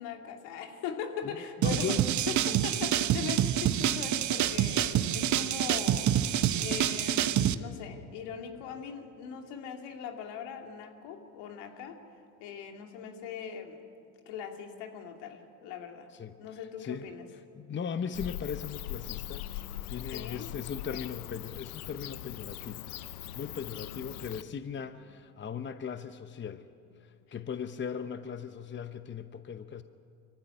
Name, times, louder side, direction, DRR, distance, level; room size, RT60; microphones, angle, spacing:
voice 1, 0.0-2.0 2.3-12.0 12.4-13.8 14.3-16.1 16.4-17.3 20.1-21.1 23.7-23.9 24.7-24.8, left 7 dB, 70° left, 4 dB, 2.7 m, -41 dB
voice 2, 1.6-2.1 16.2-16.3 16.8-17.1 17.5-19.5 19.9-22.8 23.3-26.6 27.0-29.8, left 7 dB, 25° left, 10 dB, 0.9 m, -38 dB
sound 1, 1.6-7.5, right 11 dB, 45° right, 0.9 m, -27 dB
Bird / Cricket, 18.1-24.4, left 14 dB, 90° left, 0.7 m, -41 dB
23.5 x 15.0 x 9.8 m, 2.4 s
hypercardioid pair, 75°, 42 cm